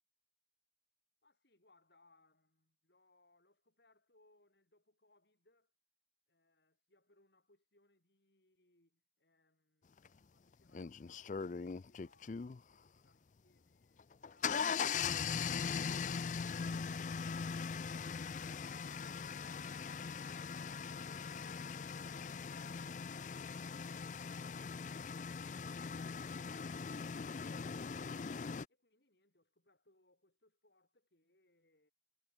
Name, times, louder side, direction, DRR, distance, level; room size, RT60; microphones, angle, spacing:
voice 1, 1.2-5.7 6.3-15.0 28.7-31.9, left 2 dB, 70° left, 7.9 m, -74 dB
sound 1, 10.0-10.1 10.7-12.6 14.0-28.6, left 6 dB, 45° left, 0.4 m, -40 dB
head